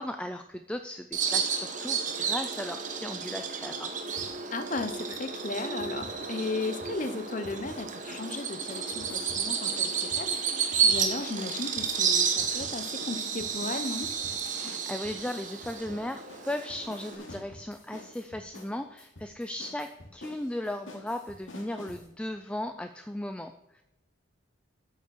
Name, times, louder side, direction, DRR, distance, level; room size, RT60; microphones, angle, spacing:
voice 1, 0.0-3.9 14.5-23.8, left 1 dB, 5° left, 7 dB, 0.3 m, -37 dB
Bird vocalization bird call bird song, 1.1-17.1, right 6 dB, 40° right, 1.0 m, -31 dB
sound 1, 4.2-5.2 5.4-8.4 8.7-22.1, left 2 dB, 80° left, 2.5 m, -49 dB
voice 2, 4.5-10.3 10.8-14.1, left 3 dB, 40° left, 9 dB, 0.8 m, -35 dB
8.0 x 6.9 x 6.4 m, 0.91 s
head